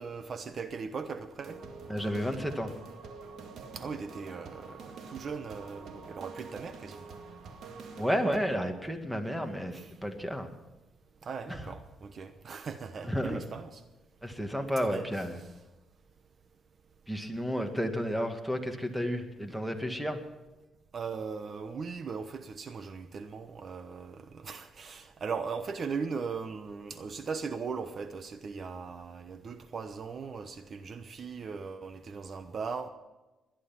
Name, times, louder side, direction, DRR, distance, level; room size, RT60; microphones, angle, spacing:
voice 1, 0.0-1.6 3.7-7.1 9.7-9.9 11.2-13.8 14.8-15.1 15.4-15.5 20.9-32.9, right 5 dB, 50° right, 10 dB, 0.9 m, -39 dB
sound 1, 1.4-8.4, right 4 dB, 70° right, 2.1 m, -46 dB
voice 2, 1.9-2.7 8.0-10.5 11.5-11.6 13.1-13.4 14.2-15.4 17.1-20.2, equal, 5° right, 6 dB, 2.0 m, -32 dB
19.5 x 11.5 x 5.8 m, 1.1 s
cardioid pair, 90°, 0 cm